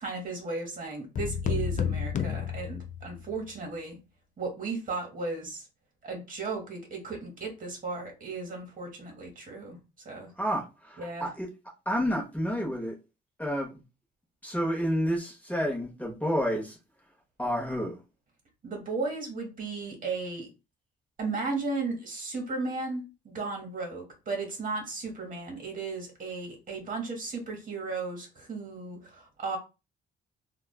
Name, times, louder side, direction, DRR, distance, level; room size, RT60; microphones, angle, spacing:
voice 1, 0.0-4.0 4.4-5.7 6.0-9.8 10.0-10.3 11.0-11.3 18.6-20.5 21.2-29.6, right 3 dB, 45° right, 1.1 m, -35 dB
sound 1, 1.2-3.4, left 7 dB, 40° left, 0.4 m, -31 dB
voice 2, 10.4-11.5 11.9-13.0 13.4-13.8 14.4-16.8 17.4-17.9, equal, 5° left, 0.9 m, -30 dB
3.2 x 2.2 x 2.3 m
cardioid pair, 90°, 20 cm